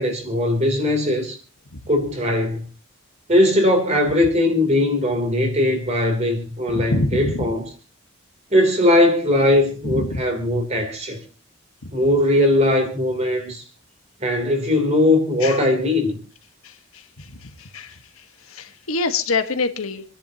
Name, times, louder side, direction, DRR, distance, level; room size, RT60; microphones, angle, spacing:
voice 1, 0.0-1.3 1.9-2.6 3.3-7.6 8.5-11.2 11.9-13.6 14.2-16.2, left 1 dB, 30° right, 3.2 m, -19 dB
voice 2, 6.7-7.4 9.8-10.2 15.4-15.6 16.6-20.0, left 3 dB, 80° left, 1.4 m, -26 dB
27.5 x 10.5 x 2.9 m
head